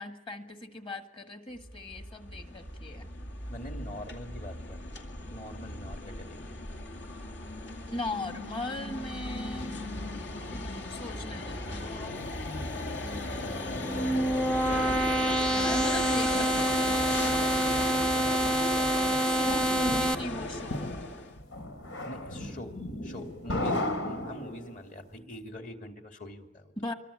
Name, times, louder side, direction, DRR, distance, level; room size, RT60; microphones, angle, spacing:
voice 1, 0.0-3.1 7.9-9.9 10.5-12.1 13.0-14.3 14.7-17.0 19.2-20.9 26.8-26.9, left 2 dB, 25° left, 6 dB, 1.8 m, -39 dB
sound 1, 1.5-21.4, left 2 dB, 65° left, 2.6 m, -37 dB
voice 2, 3.5-6.6 16.9-18.8 22.0-26.7, equal, 45° left, 4 dB, 2.7 m, -44 dB
sound 2, 13.7-20.2, right 1 dB, 5° left, 0.9 m, -27 dB
sound 3, 19.0-24.9, left 1 dB, 90° left, 4.3 m, -35 dB
26.5 x 23.5 x 8.5 m, 0.87 s
head